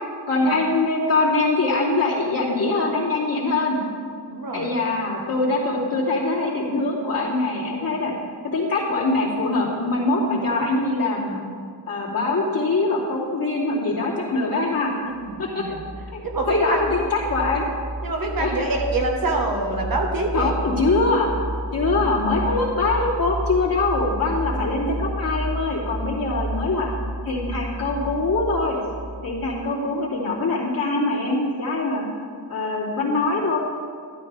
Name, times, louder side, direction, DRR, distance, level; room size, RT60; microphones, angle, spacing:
voice 1, 0.3-3.8 4.5-8.1 8.5-11.4 11.9-14.9 15.4-15.6 16.1-16.2 16.5-17.6 18.4-18.5 20.3-21.3 21.7-26.9 27.3-28.8 29.2-32.0 32.5-33.6, left 3 dB, 50° left, -6 dB, 2.9 m, -23 dB
voice 2, 4.3-4.7 15.0-15.9 16.3-16.9 18.0-20.6 21.9-22.1, right 2 dB, 50° right, 1 dB, 1.5 m, -26 dB
sound 1, 15.2-29.7, right 1 dB, 15° right, 0.4 m, -31 dB
13.0 x 11.5 x 3.4 m, 2.2 s
wide cardioid pair, 135°, 43 cm